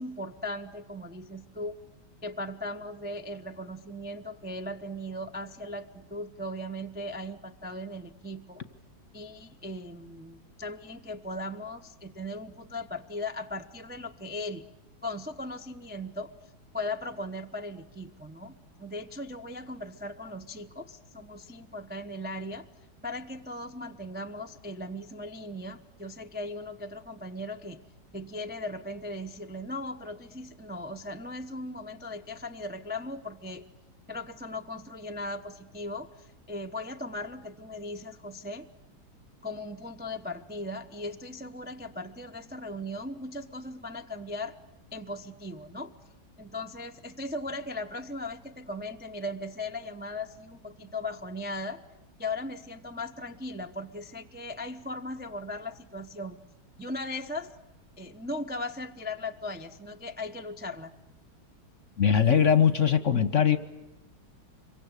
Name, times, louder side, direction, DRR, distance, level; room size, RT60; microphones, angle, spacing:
voice 1, 0.0-1.8 2.2-8.6 9.1-14.6 15.0-16.3 16.7-22.7 23.0-27.8 28.1-33.7 34.1-38.7 39.4-44.6 44.9-45.9 46.4-51.8 52.2-56.4 56.8-57.5 58.0-60.9, left 1 dB, 10° right, 4 dB, 0.5 m, -38 dB
voice 2, 62.0-63.6, left 7 dB, 45° left, 13 dB, 1.2 m, -21 dB
26.5 x 23.5 x 8.3 m, 0.93 s
omnidirectional pair, 2.2 m